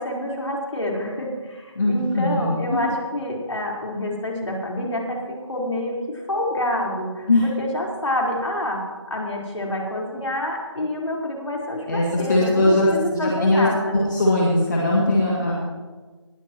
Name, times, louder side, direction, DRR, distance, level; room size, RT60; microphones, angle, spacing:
voice 1, 0.0-8.8 9.1-14.0, left 1 dB, 70° left, -2 dB, 4.2 m, -27 dB
voice 2, 1.8-2.8 7.3-7.4 11.9-13.7 13.9-15.6, left 1 dB, 35° left, -4 dB, 2.3 m, -20 dB
19.5 x 13.0 x 3.0 m, 1.4 s
figure-of-eight pair, 175°, 16 cm